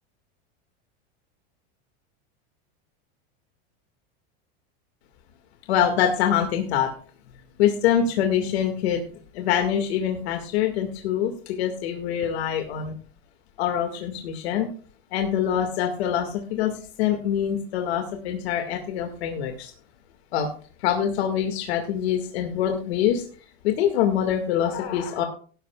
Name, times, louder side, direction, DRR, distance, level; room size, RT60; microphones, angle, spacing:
voice 1, 5.7-6.9 7.6-9.1 9.3-13.0 13.6-14.7 15.1-19.7 20.3-20.5 20.8-23.2 23.6-25.2, left 9 dB, 75° left, 3 dB, 2.0 m, -24 dB
18.0 x 11.0 x 2.3 m, 0.41 s
supercardioid pair, 165°, 32 cm